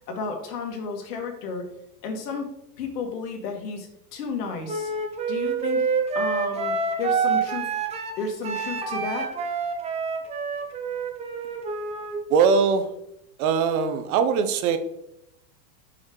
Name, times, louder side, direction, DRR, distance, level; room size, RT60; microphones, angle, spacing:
voice 1, 0.1-1.7 2.0-2.5 2.8-4.9 5.3-5.8 6.1-7.7 8.2-9.3, left 4 dB, 75° left, 2 dB, 2.1 m, -32 dB
Wind instrument woodwind instrument, 4.7-12.2, right 5 dB, 15° right, 0.5 m, -27 dB
voice 2, 12.3-12.9 13.4-14.8, right 6 dB, 60° right, 9 dB, 1.0 m, -21 dB
6.4 x 6.2 x 3.1 m, 0.81 s
supercardioid pair, 140°, 48 cm